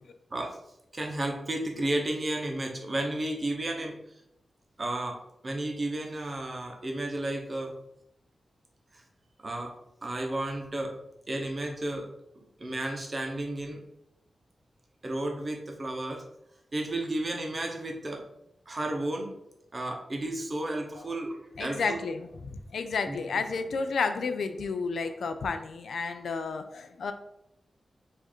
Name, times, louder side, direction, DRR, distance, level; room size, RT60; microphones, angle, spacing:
voice 1, 0.9-4.2 4.8-7.7 8.9-9.0 9.4-9.7 10.0-10.9 11.3-12.1 12.3-13.8 15.0-16.2 16.7-18.3 18.7-19.3 19.7-22.0 23.1-23.2, right 1 dB, 30° right, 2 dB, 0.8 m, -33 dB
voice 2, 21.6-27.1, left 4 dB, 85° left, 8 dB, 0.4 m, -31 dB
4.7 x 2.6 x 4.3 m, 0.80 s
wide cardioid pair, 150°, 0 cm